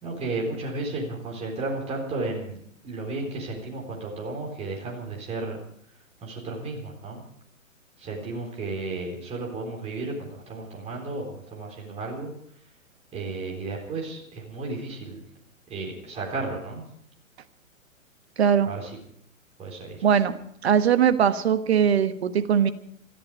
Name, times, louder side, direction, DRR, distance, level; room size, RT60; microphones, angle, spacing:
voice 1, 0.0-5.6 6.2-7.2 8.0-12.3 13.1-15.2 15.7-16.8 18.7-18.9 19.6-20.1, right 3 dB, 15° right, -1 dB, 3.9 m, -33 dB
voice 2, 18.4-18.7 20.0-20.3 20.6-22.7, right 8 dB, 50° right, 11 dB, 1.4 m, -20 dB
20.5 x 14.0 x 4.9 m, 0.68 s
figure-of-eight pair, 120°, 40 cm